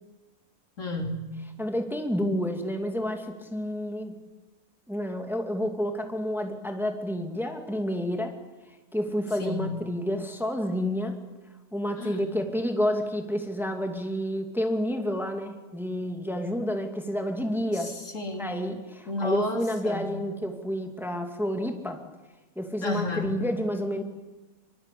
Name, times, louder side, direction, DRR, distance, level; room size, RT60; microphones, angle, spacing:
voice 1, 0.8-1.4 9.4-9.8 12.0-12.2 17.8-18.5 19.1-20.2 22.8-23.4, left 2 dB, 60° left, 3 dB, 3.8 m, -32 dB
voice 2, 1.6-4.2 4.9-8.3 8.9-11.1 11.7-17.9 18.4-22.0 22.6-24.0, equal, ahead, 4 dB, 2.4 m, -29 dB
25.0 x 24.5 x 8.5 m, 1.1 s
omnidirectional pair, 1.5 m